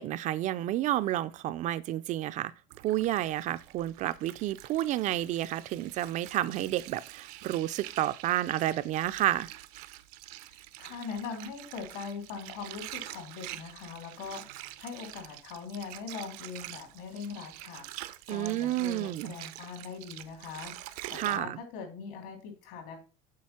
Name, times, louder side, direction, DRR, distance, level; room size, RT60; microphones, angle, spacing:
voice 1, 0.0-2.5 2.8-9.5 18.3-19.3 21.1-21.6, right 14 dB, 40° right, 0.4 m, -30 dB
Water, 2.7-21.4, right 16 dB, 80° right, 0.7 m, -46 dB
voice 2, 10.5-23.0, left 5 dB, 70° left, 3.5 m, -41 dB
7.6 x 5.3 x 5.7 m
cardioid pair, 145°, 19 cm